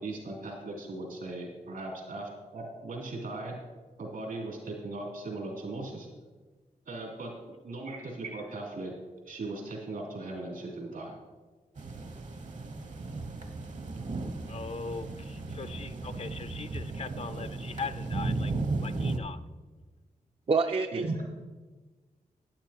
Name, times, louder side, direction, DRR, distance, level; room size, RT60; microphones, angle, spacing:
voice 1, 0.0-3.5 4.0-6.1 6.8-8.9 9.2-11.2 20.9-21.2, right 2 dB, 80° right, -2 dB, 3.5 m, -38 dB
sound 1, 11.8-19.2, right 3 dB, 55° right, 1.0 m, -35 dB
voice 2, 14.5-18.5 18.8-19.4, left 5 dB, 45° left, 12 dB, 0.5 m, -40 dB
voice 3, 20.5-21.2, right 4 dB, 40° right, 6 dB, 0.4 m, -27 dB
11.5 x 10.0 x 3.0 m, 1.3 s
cardioid pair, 65°, 15 cm